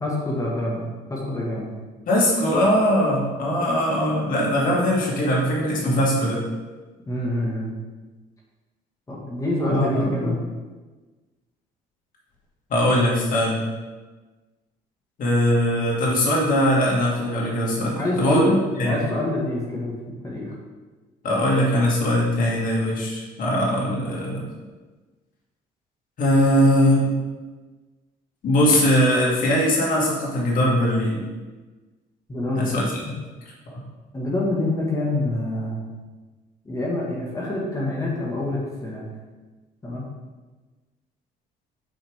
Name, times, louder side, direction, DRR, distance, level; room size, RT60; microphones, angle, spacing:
voice 1, 0.0-1.7 5.8-6.0 7.1-7.7 9.1-10.4 17.9-18.6 18.8-19.9 20.2-20.5 32.3-32.8 33.1-33.2 34.1-35.8 36.7-39.0 39.8-40.0, left 1 dB, 20° left, -4 dB, 1.8 m, -26 dB
voice 2, 2.1-6.4 9.7-10.4 12.7-13.6 15.2-19.0 21.2-24.4 26.2-27.1 28.4-31.2 32.5-33.0, equal, 55° left, -4 dB, 2.2 m, -21 dB
8.9 x 4.8 x 3.6 m, 1.3 s
cardioid pair, 110°, 17 cm